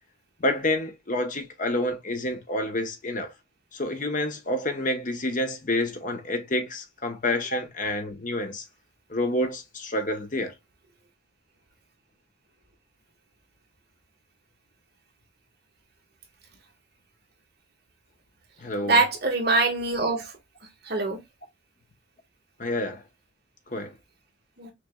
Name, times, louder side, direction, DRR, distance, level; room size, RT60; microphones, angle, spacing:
voice 1, 0.4-3.3 3.7-8.6 9.1-10.5 18.6-19.0 22.6-23.0 23.7-23.9, left 1 dB, 40° left, 1.0 m, -28 dB
voice 2, 18.8-20.3 20.8-21.2 24.6-24.7, right 3 dB, 55° right, 1.7 m, -23 dB
6.0 x 3.4 x 2.3 m
head